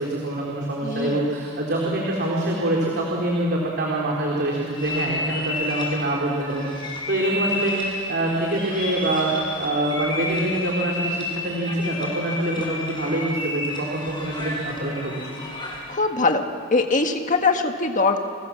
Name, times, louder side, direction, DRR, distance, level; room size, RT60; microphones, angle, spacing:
voice 1, 0.0-15.2, right 1 dB, 50° right, -3 dB, 3.7 m, -25 dB
voice 2, 0.8-1.3 15.9-16.4 16.7-18.2, left 3 dB, 40° left, 4 dB, 1.7 m, -22 dB
sound 1, 4.7-15.9, left 2 dB, 20° left, 6.6 m, -31 dB
29.0 x 26.0 x 7.3 m, 2.5 s
head